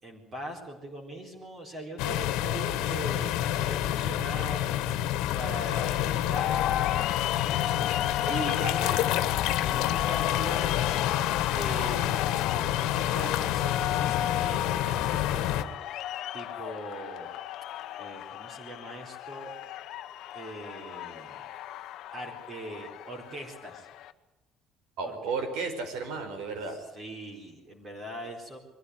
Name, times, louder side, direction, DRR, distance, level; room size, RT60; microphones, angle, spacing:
voice 1, 0.0-4.8 5.3-7.0 8.2-8.6 9.4-11.1 11.5-15.7 16.3-17.3 18.0-19.5 20.3-21.4 22.1-23.9 25.0-25.2 26.9-28.6, right 1 dB, 25° right, 0 dB, 4.2 m, -41 dB
sound 1, 2.0-15.6, left 12 dB, 85° left, 1.5 m, -28 dB
sound 2, 6.4-24.1, left 12 dB, 55° left, 1.1 m, -34 dB
voice 2, 8.6-9.2 25.0-26.8, right 3 dB, 75° right, 6 dB, 5.2 m, -34 dB
23.0 x 15.0 x 9.5 m, 0.98 s
cardioid pair, 170°, 0 cm